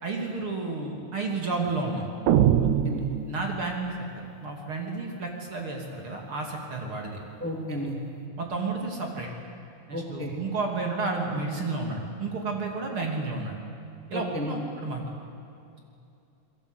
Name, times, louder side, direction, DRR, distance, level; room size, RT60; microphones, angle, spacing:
voice 1, 0.0-2.1 3.3-7.2 8.4-9.3 9.9-13.6 14.1-15.0, right 3 dB, 45° right, 1 dB, 3.3 m, -31 dB
sound 1, 2.3-3.9, right 10 dB, 80° right, 2.4 m, -23 dB
voice 2, 2.6-3.1 7.4-8.0 9.9-10.3 14.1-14.5, equal, 5° left, 0 dB, 2.7 m, -33 dB
28.5 x 21.5 x 8.1 m, 2.6 s
omnidirectional pair, 3.5 m